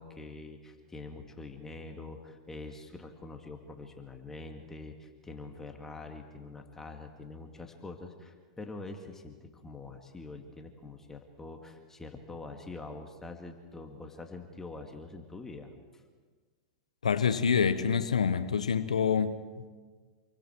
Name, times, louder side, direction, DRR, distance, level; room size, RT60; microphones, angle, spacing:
voice 1, 0.0-16.0, left 3 dB, 10° left, 4 dB, 2.1 m, -45 dB
voice 2, 17.0-19.6, left 6 dB, 85° left, 11 dB, 1.0 m, -27 dB
28.0 x 23.0 x 4.6 m, 1.5 s
hypercardioid pair, 105°, 4 cm